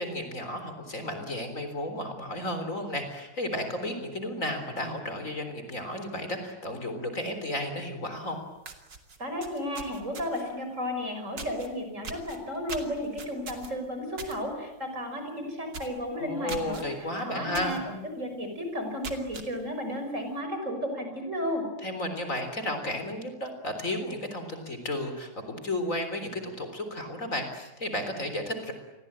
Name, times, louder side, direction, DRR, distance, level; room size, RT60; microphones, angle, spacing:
voice 1, 0.0-8.4 16.1-17.8 21.8-28.7, left 1 dB, 40° left, 7 dB, 4.1 m, -33 dB
sound 1, 8.2-8.3 8.6-10.5 11.4-11.7 12.0-14.4 14.7-15.0 15.3-15.4 15.7-16.0 16.5-16.8 17.5-17.8 18.2-18.3 18.8-19.5, right 4 dB, 65° right, 3.4 m, -41 dB
voice 2, 9.2-21.6, equal, 40° right, 5 dB, 6.5 m, -33 dB
28.5 x 22.5 x 8.8 m, 1.0 s
omnidirectional pair, 2.1 m